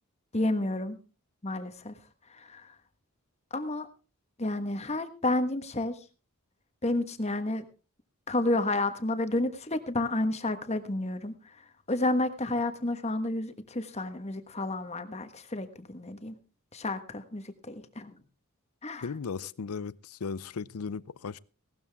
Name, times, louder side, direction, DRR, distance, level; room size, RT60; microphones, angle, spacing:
voice 1, 0.3-1.0 1.4-1.9 2.3-2.7 3.5-3.9 4.4-5.9 6.8-7.6 8.3-11.3 11.9-16.3 16.7-18.2 18.8-19.1, left 2 dB, 30° left, 1.3 m, -30 dB
voice 2, 19.0-21.4, left 5 dB, 80° left, 0.6 m, -36 dB
17.5 x 12.5 x 3.5 m
head